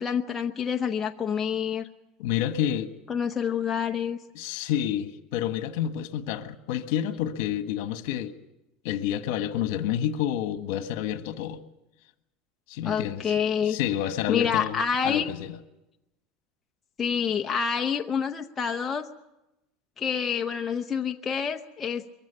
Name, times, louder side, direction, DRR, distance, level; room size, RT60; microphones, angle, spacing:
voice 1, 0.0-1.9 3.1-4.2 12.8-13.8 14.3-15.3 17.0-19.1 20.0-22.0, left 7 dB, 15° left, 0.7 m, -27 dB
voice 2, 2.2-2.9 4.3-8.3 8.8-11.6 12.7-13.3 13.6-15.6, left 10 dB, 65° left, 1.5 m, -29 dB
23.0 x 15.0 x 10.0 m
cardioid pair, 165°, 0 cm